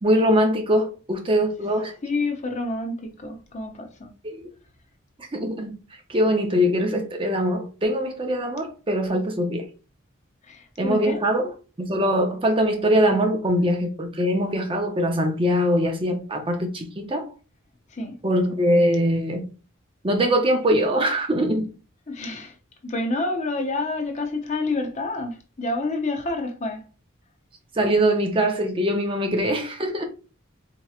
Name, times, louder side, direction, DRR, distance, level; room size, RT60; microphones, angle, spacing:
voice 1, 0.0-1.9 4.2-4.4 5.3-5.7 6.1-9.7 10.8-11.4 11.8-17.3 18.2-19.4 20.0-21.7 27.8-30.0, equal, 25° right, 0.6 m, -22 dB
voice 2, 2.0-4.1 10.4-11.2 17.9-18.1 22.1-22.5 22.8-26.8, left 2 dB, 35° left, 0.6 m, -28 dB
4.3 x 2.9 x 2.4 m
head